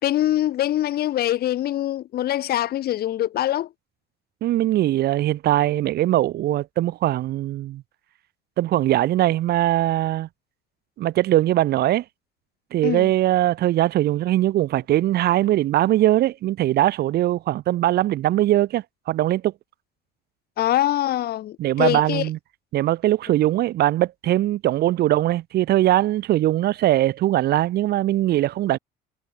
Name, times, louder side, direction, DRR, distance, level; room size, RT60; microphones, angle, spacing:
voice 1, 0.0-3.7 12.8-13.1 20.6-22.2, left 13 dB, 65° left, 3.3 m, -23 dB
voice 2, 4.4-7.8 8.6-10.3 11.0-12.0 12.7-19.5 21.6-22.4 22.7-28.8, right 14 dB, 70° right, 2.4 m, -21 dB
cardioid pair, 110°, 17 cm